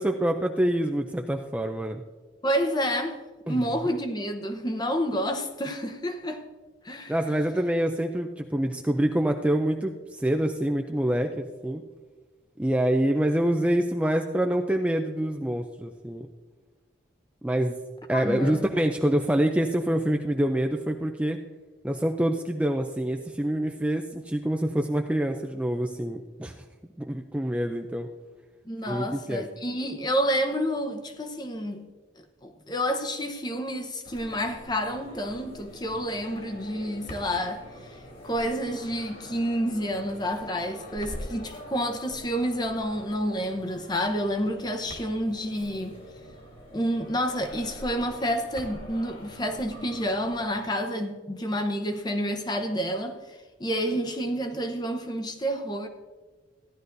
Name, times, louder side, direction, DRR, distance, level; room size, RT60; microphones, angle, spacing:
voice 1, 0.0-2.0 3.5-3.6 7.1-11.8 12.6-16.3 17.4-17.8 18.1-21.4 21.8-26.6 27.0-28.1 28.9-29.4, right 1 dB, 5° right, 0.4 m, -26 dB
voice 2, 2.4-3.2 3.5-6.4 6.8-7.1 18.1-18.7 28.7-31.9 32.4-37.6 38.2-46.0 46.7-53.2 53.6-55.9, equal, 20° left, 0.8 m, -29 dB
sound 1, 34.1-50.6, equal, 55° left, 2.3 m, -44 dB
15.0 x 11.0 x 2.6 m
head